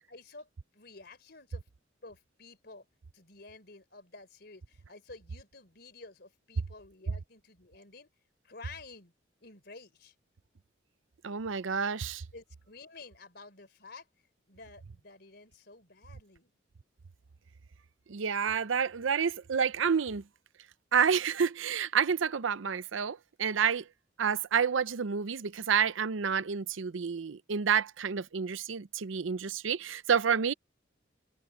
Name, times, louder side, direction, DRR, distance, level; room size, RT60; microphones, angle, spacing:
voice 1, 0.1-1.6 2.0-2.9 3.1-8.1 8.4-9.1 9.4-10.1 12.3-14.1 14.5-16.5, left 3 dB, 55° left, 3.9 m, -51 dB
voice 2, 11.2-12.2 18.1-20.2 20.9-23.9 24.2-30.5, right 6 dB, 85° right, 0.6 m, -29 dB
head